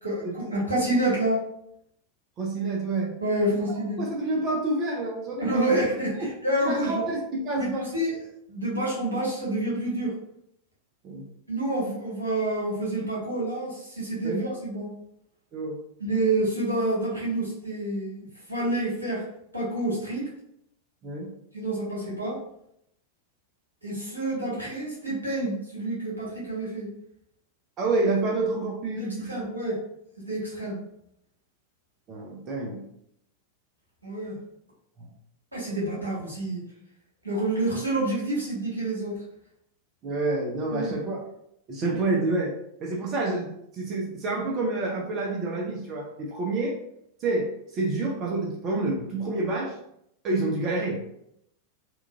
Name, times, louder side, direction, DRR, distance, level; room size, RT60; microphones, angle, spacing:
voice 1, 0.0-1.4 3.2-4.0 5.4-7.0 7.6-8.1 8.5-10.1 11.5-14.9 16.0-19.2 19.5-20.3 21.5-22.4 23.8-26.9 28.9-29.8 30.2-30.8 34.0-34.4 35.5-36.6 37.2-39.1 40.7-40.9, right 1 dB, 85° right, -6 dB, 1.1 m, -28 dB
voice 2, 2.4-3.2 3.7-5.6 6.6-7.9 11.0-11.3 14.2-14.4 15.5-15.8 21.0-21.3 27.8-29.4 32.1-32.8 40.0-41.2 41.7-46.8 47.2-49.8 50.2-51.0, right 2 dB, 35° right, -2 dB, 0.5 m, -28 dB
2.9 x 2.3 x 2.2 m, 0.76 s
figure-of-eight pair, 90°, 0 cm